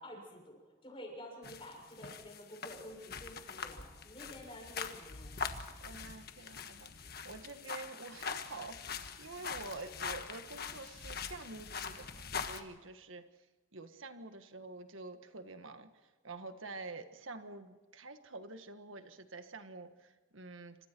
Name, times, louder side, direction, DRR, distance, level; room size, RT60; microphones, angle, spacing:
voice 1, 0.0-5.3, equal, 25° left, 2 dB, 6.6 m, -50 dB
sound 1, 1.4-12.6, left 5 dB, 50° left, 1.5 m, -43 dB
voice 2, 5.8-13.2 13.7-20.8, right 3 dB, 85° right, 8 dB, 1.6 m, -48 dB
27.5 x 26.0 x 4.6 m, 1.2 s
head